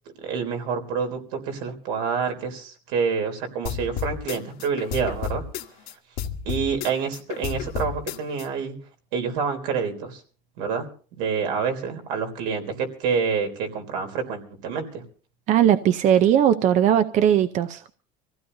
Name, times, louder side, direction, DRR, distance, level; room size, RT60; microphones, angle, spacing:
voice 1, 0.2-5.4 6.4-8.8 9.1-10.2 10.6-10.9 11.1-15.0, right 6 dB, 80° right, 3.6 m, -27 dB
sound 1, 3.6-5.9 6.2-8.4, left 8 dB, 60° left, 1.5 m, -31 dB
voice 2, 15.5-17.9, right 10 dB, 45° right, 0.6 m, -19 dB
26.0 x 15.5 x 2.7 m
cardioid pair, 150°, 17 cm